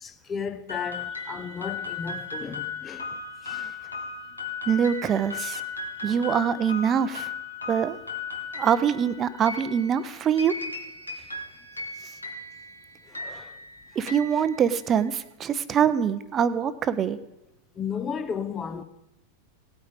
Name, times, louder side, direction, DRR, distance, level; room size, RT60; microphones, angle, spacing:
voice 1, 0.0-3.1 3.4-3.8 11.1-11.3 13.1-13.6 14.3-14.4 17.8-18.8, left 6 dB, 20° left, 0.7 m, -34 dB
sound 1, 0.7-15.1, left 4 dB, 80° left, 1.5 m, -37 dB
voice 2, 4.7-5.6 6.0-7.3 7.7-8.0 8.5-10.5 14.0-17.2, right 8 dB, 25° right, 0.7 m, -24 dB
17.0 x 8.9 x 4.9 m
figure-of-eight pair, 90°, 0 cm